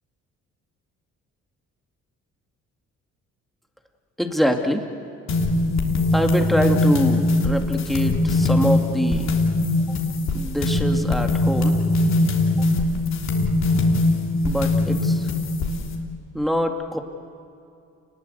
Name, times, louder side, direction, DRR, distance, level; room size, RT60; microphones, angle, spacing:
voice 1, 4.2-4.8 6.1-9.3 9.9-10.0 10.3-11.8 12.6-12.7 14.4-15.3 16.3-17.0, equal, ahead, 3 dB, 2.3 m, -24 dB
sound 1, 5.3-16.0, left 2 dB, 60° left, 3.5 m, -21 dB
28.5 x 20.5 x 8.2 m, 2.6 s
cardioid pair, 90°, 30 cm